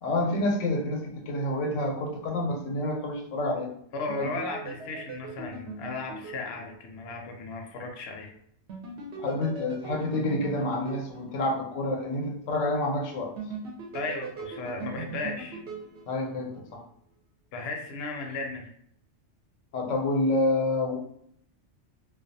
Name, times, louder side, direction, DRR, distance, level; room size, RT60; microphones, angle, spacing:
voice 1, 0.0-3.7 4.2-4.3 9.2-13.3 16.1-16.8 19.7-21.0, left 1 dB, 90° left, 1 dB, 1.0 m, -28 dB
voice 2, 3.9-8.3 13.9-15.6 17.5-18.7, left 3 dB, 65° left, 1 dB, 0.7 m, -35 dB
sound 1, 4.1-7.1 8.7-11.9 13.4-16.7, right 4 dB, 70° right, 0.8 m, -40 dB
2.3 x 2.2 x 2.6 m, 0.69 s
omnidirectional pair, 1.2 m